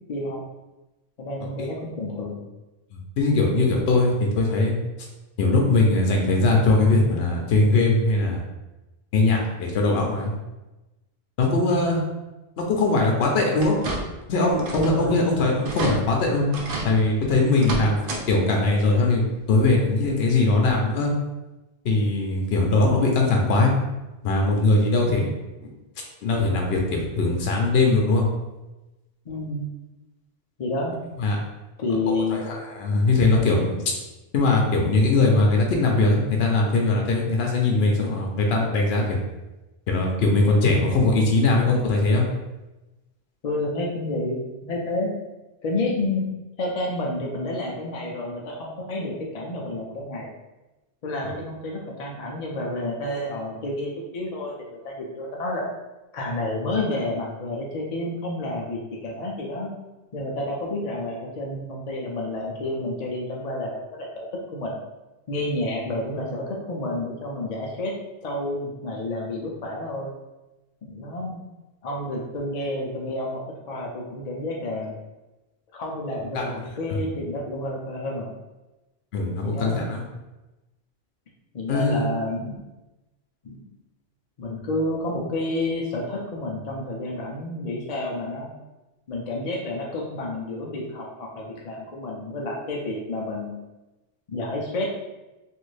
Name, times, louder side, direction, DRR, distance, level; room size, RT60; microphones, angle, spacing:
voice 1, 0.1-0.4 1.2-2.4 11.5-11.8 14.7-15.2 17.5-17.8 29.3-29.7 30.6-30.9 31.8-32.4 43.4-45.1 45.6-46.3 46.6-50.3 51.0-54.5 54.8-55.7 56.1-59.7 60.1-64.8 65.3-67.9 68.2-70.1 70.8-71.4 71.8-73.4 73.7-74.9 75.7-76.5 76.8-78.3 79.4-79.8 81.5-82.6 83.4-83.7 84.4-88.5 89.1-93.5 94.3-94.9, left 2 dB, 50° left, -2 dB, 0.6 m, -30 dB
voice 2, 3.2-4.7 5.4-8.4 9.1-10.3 11.4-12.0 12.6-13.8 14.3-16.5 16.8-21.1 21.8-23.7 24.2-25.3 26.2-28.3 31.2-31.4 32.1-33.8 34.3-39.2 39.9-42.2 76.3-76.6 76.9-77.0 79.1-80.0 81.7-82.0, left 2 dB, 80° left, 0 dB, 0.9 m, -21 dB
sound 1, 13.6-14.3 14.6-15.0 15.3-15.4 15.6-16.0 16.5-16.9 17.5-18.2 18.6-18.7 20.1-20.2 20.7-20.8, right 3 dB, 65° right, 0.7 m, -30 dB
3.2 x 2.5 x 3.2 m, 1.0 s
omnidirectional pair, 1.1 m